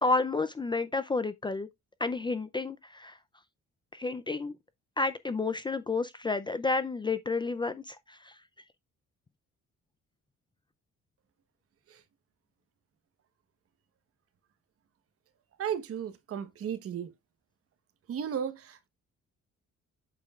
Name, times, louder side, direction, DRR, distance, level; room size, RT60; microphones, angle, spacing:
voice 1, 0.0-1.7 2.0-3.2 3.9-4.6 5.0-8.3, left 3 dB, 15° left, 0.4 m, -30 dB
voice 2, 15.6-17.1 18.1-18.9, right 8 dB, 50° right, 1.2 m, -35 dB
8.3 x 6.9 x 2.4 m
cardioid pair, 175°, 29 cm